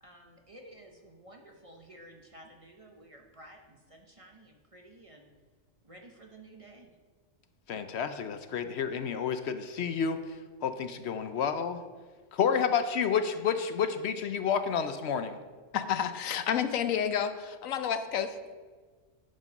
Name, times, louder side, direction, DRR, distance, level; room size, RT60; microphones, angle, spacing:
voice 1, 0.0-5.3 5.8-6.9, right 1 dB, 30° right, 2 dB, 0.7 m, -53 dB
voice 2, 7.7-10.2 10.6-11.8 12.3-15.4, left 7 dB, 65° left, 9 dB, 0.8 m, -30 dB
voice 3, 15.7-18.5, left 8 dB, 85° left, 10 dB, 1.1 m, -30 dB
11.0 x 5.2 x 5.4 m, 1.5 s
omnidirectional pair, 1.3 m